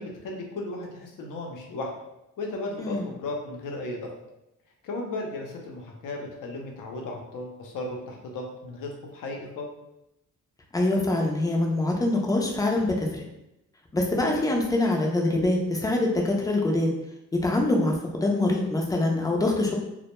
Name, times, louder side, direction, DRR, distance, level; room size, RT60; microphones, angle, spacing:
voice 1, 0.0-1.9 2.4-4.1 4.8-9.7, left 2 dB, 85° left, 1 dB, 0.7 m, -35 dB
voice 2, 10.7-13.2 13.9-16.9 17.3-19.7, left 2 dB, 10° left, 0 dB, 0.5 m, -24 dB
2.1 x 2.1 x 2.9 m, 0.88 s
cardioid pair, 85°, 31 cm